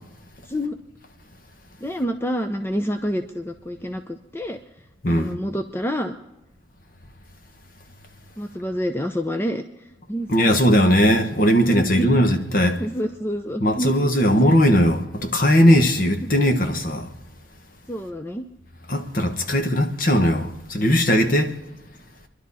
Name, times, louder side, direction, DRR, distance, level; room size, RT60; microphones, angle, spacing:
voice 1, 0.4-0.8 1.8-4.6 5.1-6.2 8.4-9.6 10.1-10.6 11.8-12.2 12.8-14.6 16.2-16.3 17.9-18.4, equal, 10° left, 0.5 m, -28 dB
voice 2, 5.0-5.4 10.3-12.8 13.6-17.1 18.9-21.5, equal, 45° left, 1.2 m, -19 dB
27.5 x 11.5 x 4.1 m
head